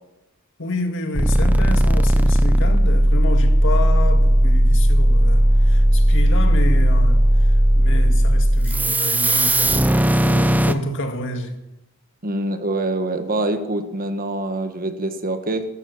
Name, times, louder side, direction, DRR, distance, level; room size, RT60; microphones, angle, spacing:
voice 1, 0.6-7.3 7.8-11.6, left 1 dB, 60° left, 2.0 m, -29 dB
sound 1, 1.2-10.7, equal, 5° right, 0.7 m, -16 dB
voice 2, 12.2-15.7, right 2 dB, 40° right, 1.5 m, -25 dB
14.5 x 14.0 x 7.2 m
head